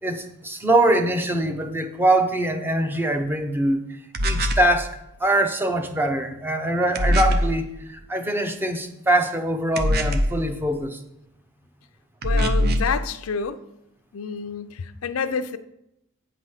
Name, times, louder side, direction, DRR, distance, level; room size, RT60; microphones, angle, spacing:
voice 1, 0.0-3.8 4.2-4.9 5.2-11.0, right 1 dB, 10° right, 5 dB, 0.7 m, -23 dB
sound 1, 4.1-4.7 7.0-7.5 9.8-10.4 12.2-13.0, equal, 50° right, 0.6 m, -21 dB
voice 2, 12.2-13.6 14.1-15.6, left 6 dB, 80° left, 10 dB, 0.5 m, -28 dB
8.6 x 4.9 x 5.7 m, 0.84 s
head